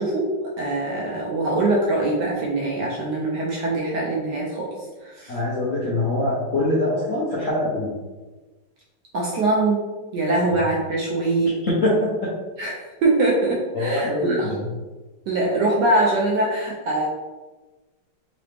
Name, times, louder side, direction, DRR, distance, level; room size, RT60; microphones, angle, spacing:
voice 1, 0.0-4.7 5.0-5.4 9.1-9.8 10.1-11.5 12.6-14.6 15.3-17.1, right 2 dB, 70° right, -3 dB, 1.0 m, -23 dB
voice 2, 5.3-7.9 11.4-12.3 13.7-14.6, left 1 dB, 60° left, -7 dB, 0.8 m, -23 dB
3.8 x 3.0 x 3.3 m, 1.2 s
omnidirectional pair, 2.3 m